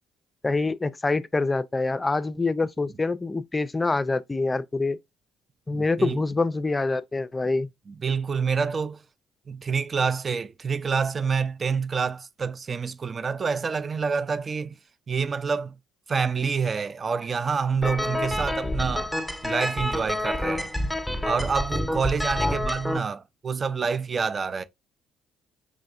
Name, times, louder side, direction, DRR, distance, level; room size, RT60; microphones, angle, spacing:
voice 1, 0.4-5.0 5.7-7.7 22.4-22.6, left 3 dB, 20° left, 0.4 m, -25 dB
voice 2, 5.7-6.2 7.9-9.0 9.5-14.8 15.1-15.7 16.1-19.1 19.4-20.7 21.2-24.6, right 5 dB, 35° right, 0.4 m, -27 dB
sound 1, 17.8-23.0, left 1 dB, 5° left, 0.8 m, -28 dB
5.0 x 3.2 x 2.5 m
figure-of-eight pair, 50°, 0 cm